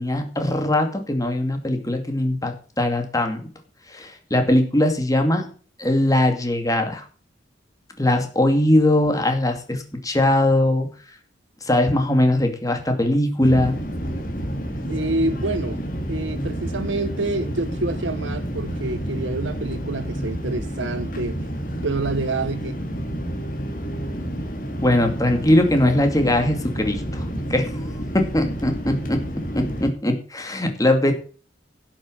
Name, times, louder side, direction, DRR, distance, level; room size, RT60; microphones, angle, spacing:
voice 1, 0.0-3.4 3.9-5.4 5.8-7.0 8.0-10.9 11.6-13.8 24.8-27.2 27.5-27.7 28.1-29.2 29.5-31.1, left 1 dB, 20° left, 2.4 m, -20 dB
sound 1, 13.4-29.9, equal, 45° left, 2.8 m, -29 dB
voice 2, 14.9-15.8 16.1-21.4 21.8-22.8, right 2 dB, 80° right, 1.0 m, -27 dB
12.0 x 7.4 x 6.5 m
head